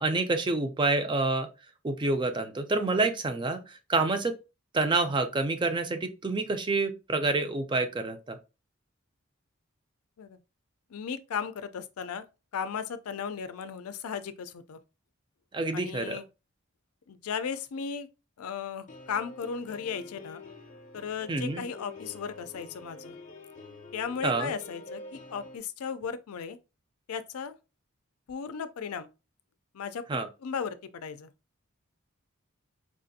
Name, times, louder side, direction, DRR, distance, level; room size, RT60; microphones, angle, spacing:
voice 1, 0.0-1.5 1.8-4.3 4.7-8.4 15.5-16.2 21.3-21.6 24.2-24.5 30.1-30.3, right 3 dB, 20° right, 0.4 m, -28 dB
voice 2, 10.9-12.2 12.5-14.8 15.7-16.3 17.1-18.1 18.4-20.4 20.9-23.2 23.9-26.6 27.1-27.5 28.3-29.1 29.7-30.0 30.4-31.3, left 6 dB, 85° left, 0.4 m, -36 dB
sound 1, 18.9-25.6, left 3 dB, 35° left, 0.6 m, -47 dB
4.6 x 2.5 x 2.6 m
head